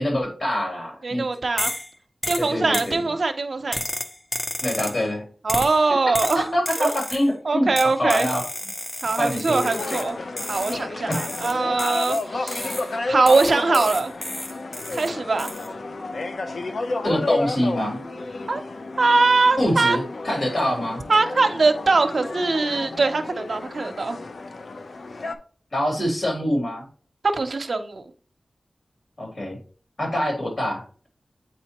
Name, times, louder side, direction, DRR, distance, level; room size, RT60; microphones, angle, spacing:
voice 1, 0.0-1.2 2.4-3.0 4.6-5.2 6.3-7.7 8.0-8.5 9.2-9.6 11.1-11.4 17.0-18.0 19.6-21.0 25.7-26.9 29.2-29.6 30.0-30.8, equal, 55° left, 3.0 m, -25 dB
voice 2, 1.0-1.7 2.3-3.8 5.4-6.4 6.8-6.9 7.5-8.3 9.0-10.2 10.5-14.1 14.9-15.5 18.5-18.6 19.0-20.0 21.1-24.2 27.3-28.0, right 3 dB, 70° right, 0.7 m, -22 dB
sound 1, 1.6-1.9 2.2-3.0 3.7-5.0 5.5-5.8 6.1-7.3 7.8-10.1 10.4-10.8 11.1-12.9 13.3-15.1 15.4-15.7, left 1 dB, 25° left, 0.7 m, -31 dB
sound 2, 9.6-25.4, left 2 dB, 75° left, 0.6 m, -31 dB
8.5 x 4.3 x 2.9 m
wide cardioid pair, 65°, 0 cm